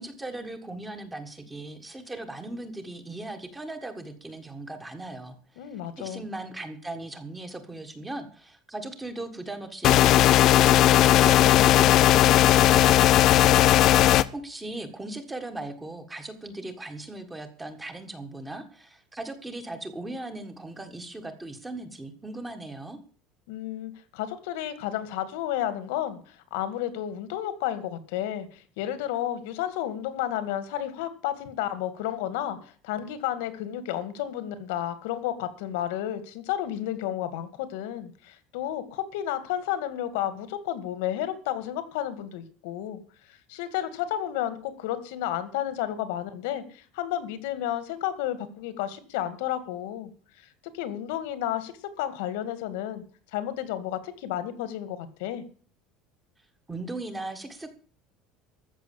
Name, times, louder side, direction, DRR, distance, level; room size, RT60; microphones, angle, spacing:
voice 1, 0.0-10.7 11.1-13.6 14.3-23.0 56.7-57.7, right 2 dB, 10° right, 7 dB, 1.6 m, -38 dB
voice 2, 5.6-6.2 23.5-43.0 43.3-50.1 50.4-50.5 50.7-53.0 53.3-55.4, left 11 dB, 85° left, 12 dB, 2.1 m, -32 dB
sound 1, 9.8-14.2, left 13 dB, 40° left, 0.6 m, -17 dB
14.0 x 6.7 x 8.5 m, 0.42 s
cardioid pair, 175°, 0 cm